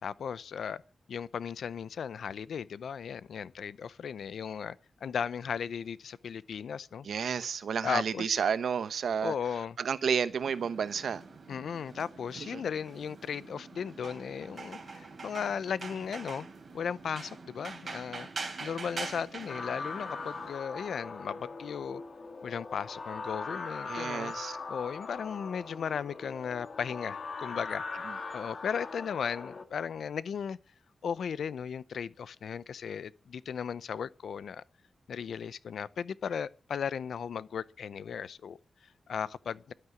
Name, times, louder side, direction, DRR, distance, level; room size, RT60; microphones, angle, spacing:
voice 1, 0.0-0.8 1.1-4.8 5.0-7.1 7.8-8.4 9.2-9.8 11.5-16.5 16.7-22.0 22.4-27.9 28.3-30.6 31.0-34.6 35.1-38.6 39.1-39.7, left 7 dB, 90° left, 0.6 m, -36 dB
voice 2, 7.0-9.3 9.8-11.2 12.4-12.6 23.9-24.6, right 7 dB, 85° right, 0.9 m, -31 dB
sound 1, 10.4-20.5, right 4 dB, 45° right, 3.7 m, -44 dB
sound 2, 19.5-29.6, left 4 dB, 45° left, 2.0 m, -40 dB
12.0 x 9.5 x 9.7 m
wide cardioid pair, 140°, 0 cm